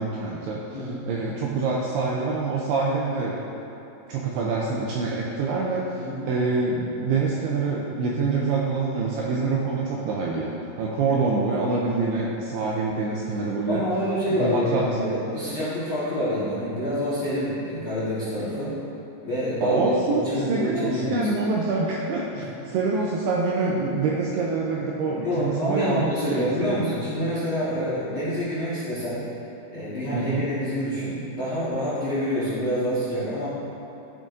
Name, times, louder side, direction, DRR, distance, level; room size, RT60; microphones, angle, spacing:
voice 1, 0.0-0.6 1.1-3.4 4.1-5.9 6.3-10.5 10.8-13.8 14.3-14.9 19.6-26.9 30.1-30.5, right 3 dB, 85° right, -3 dB, 2.3 m, -25 dB
voice 2, 0.7-1.0 5.9-6.2 13.7-18.8 19.2-21.3 22.3-22.4 25.2-29.2 29.7-33.5, equal, 70° left, -11 dB, 1.2 m, -27 dB
15.0 x 6.2 x 2.6 m, 2.8 s
omnidirectional pair, 5.3 m